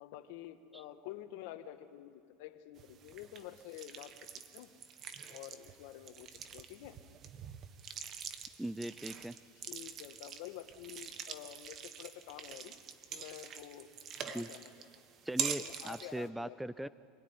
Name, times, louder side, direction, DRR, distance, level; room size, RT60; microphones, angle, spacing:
voice 1, 0.0-4.7 5.3-7.0 9.7-12.8 13.1-13.9 14.2-14.7 15.5-16.6, left 12 dB, 70° left, 8 dB, 1.7 m, -49 dB
sound 1, 2.8-16.3, right 8 dB, 40° right, 1.5 m, -45 dB
voice 2, 8.6-9.4 14.3-14.5 15.2-16.9, right 1 dB, 5° right, 17 dB, 0.6 m, -39 dB
26.5 x 18.0 x 10.0 m, 2.3 s
supercardioid pair, 125°, 0 cm